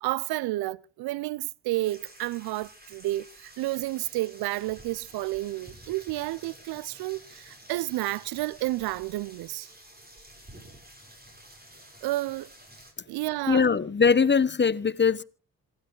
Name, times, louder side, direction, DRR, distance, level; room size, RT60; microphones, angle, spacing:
voice 1, 0.0-9.7 12.0-12.5 13.1-13.6, right 18 dB, 70° right, 0.7 m, -31 dB
sound 1, 1.8-12.9, right 1 dB, 25° right, 7.2 m, -51 dB
voice 2, 13.5-15.2, left 5 dB, 25° left, 1.1 m, -21 dB
26.5 x 11.0 x 3.9 m
hypercardioid pair, 40°, 39 cm